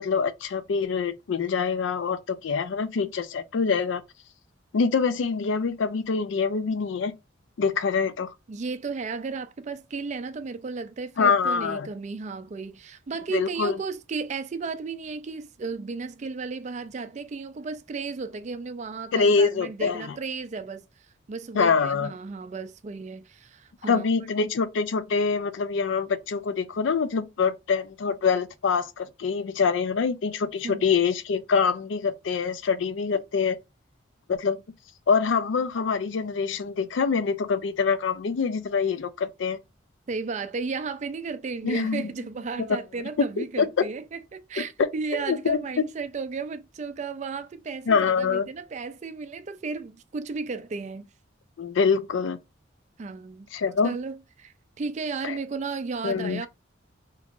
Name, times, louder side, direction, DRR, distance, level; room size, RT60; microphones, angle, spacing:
voice 1, 0.0-4.0 4.7-7.1 7.6-8.3 11.2-11.9 13.3-13.8 19.1-20.2 21.5-22.1 23.9-33.6 34.3-34.6 35.1-39.6 41.6-42.1 42.6-42.8 43.4-43.7 44.6-45.6 47.9-48.5 51.6-52.4 53.5-54.0 55.2-55.4 56.0-56.4, left 5 dB, 70° left, 0.4 m, -25 dB
voice 2, 8.5-20.8 21.3-24.0 30.6-30.9 40.1-51.1 53.0-53.5 53.8-56.5, right 4 dB, 35° right, 0.3 m, -34 dB
2.9 x 2.4 x 3.6 m
head